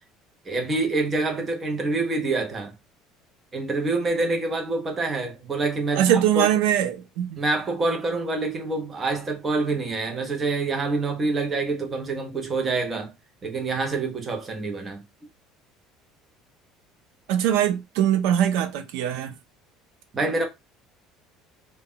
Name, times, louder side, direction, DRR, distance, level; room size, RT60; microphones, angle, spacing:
voice 1, 0.5-2.7 3.5-6.4 7.4-13.1 13.4-15.0 20.1-20.5, right 3 dB, 20° right, 0.6 m, -26 dB
voice 2, 5.9-7.4 17.3-19.3, right 10 dB, 80° right, 0.3 m, -22 dB
2.1 x 2.0 x 3.6 m
cardioid pair, 170°, 0 cm